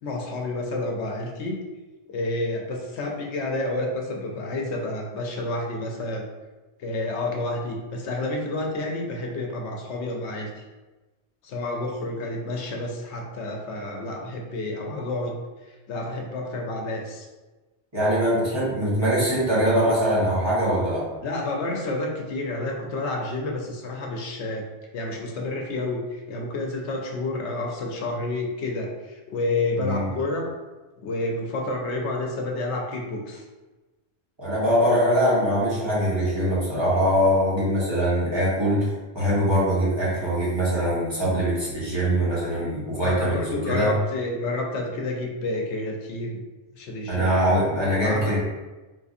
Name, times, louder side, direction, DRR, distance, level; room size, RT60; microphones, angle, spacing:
voice 1, 0.0-1.6 2.1-6.3 6.8-10.6 11.4-15.4 15.7-17.3 21.2-24.7 24.9-30.5 31.0-33.4 43.0-46.4 46.8-47.4 48.0-48.3, left 2 dB, 80° left, 1 dB, 0.9 m, -29 dB
voice 2, 17.9-21.0 29.8-30.1 34.4-43.9 47.1-48.4, equal, 25° right, -9 dB, 1.1 m, -22 dB
4.0 x 2.6 x 2.4 m, 1.2 s
omnidirectional pair, 1.2 m